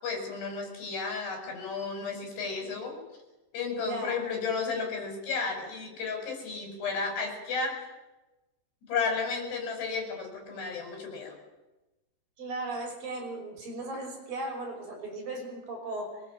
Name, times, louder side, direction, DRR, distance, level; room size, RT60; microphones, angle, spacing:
voice 1, 0.0-3.0 3.5-7.9 8.9-11.4, left 5 dB, 75° left, 3 dB, 7.3 m, -33 dB
voice 2, 3.8-4.3 12.4-16.2, right 2 dB, 55° right, 1 dB, 7.3 m, -37 dB
23.5 x 21.5 x 7.6 m, 1.0 s
omnidirectional pair, 4.8 m